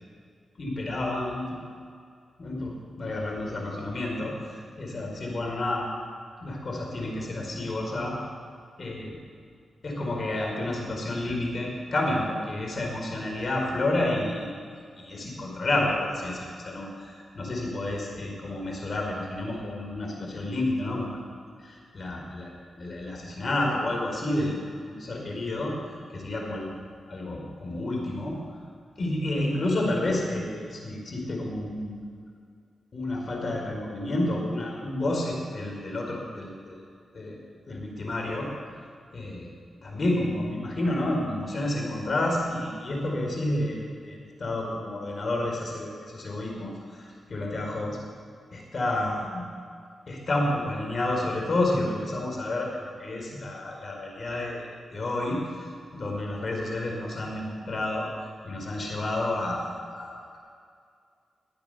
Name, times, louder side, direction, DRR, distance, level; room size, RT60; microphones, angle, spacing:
voice 1, 0.6-1.6 2.4-5.9 6.4-8.2 8.8-9.2 9.8-14.5 15.0-21.2 21.6-22.5 22.8-25.7 26.1-26.7 27.1-28.6 29.0-32.0 32.9-36.8 37.1-37.4 37.7-38.5 39.1-39.5 39.8-48.0 48.5-49.5 50.1-54.6 54.9-55.7 55.9-58.1 58.4-60.4, left 1 dB, 50° left, 0 dB, 4.9 m, -30 dB
22.0 x 8.7 x 7.0 m, 2.2 s
cardioid pair, 70°, 0 cm